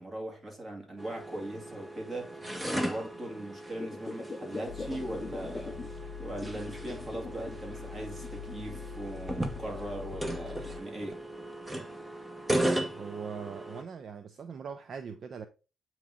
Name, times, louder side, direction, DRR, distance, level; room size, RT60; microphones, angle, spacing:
voice 1, 0.0-11.2, right 1 dB, 30° right, 2.5 m, -40 dB
sound 1, 1.0-13.8, right 1 dB, 10° right, 0.9 m, -37 dB
sound 2, 3.7-5.9 6.2-7.6 7.9-8.9 9.5-9.6, left 4 dB, 30° left, 0.4 m, -42 dB
sound 3, 4.7-10.8, left 11 dB, 80° left, 0.6 m, -45 dB
voice 2, 12.5-15.5, right 6 dB, 55° right, 0.5 m, -41 dB
8.3 x 3.1 x 3.8 m
cardioid pair, 90°, 0 cm